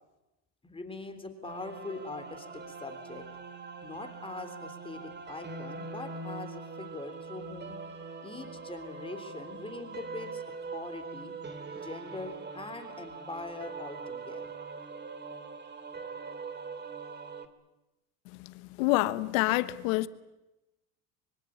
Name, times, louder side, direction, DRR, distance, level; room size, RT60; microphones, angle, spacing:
voice 1, 0.6-3.3 3.8-7.8 8.2-10.4 10.7-11.3 11.8-14.6, left 3 dB, 15° left, 3.5 m, -42 dB
sound 1, 1.4-17.5, right 4 dB, 25° right, 2.7 m, -42 dB
voice 2, 18.8-20.1, left 19 dB, 85° left, 1.4 m, -26 dB
25.0 x 24.0 x 8.7 m
supercardioid pair, 105°, 40 cm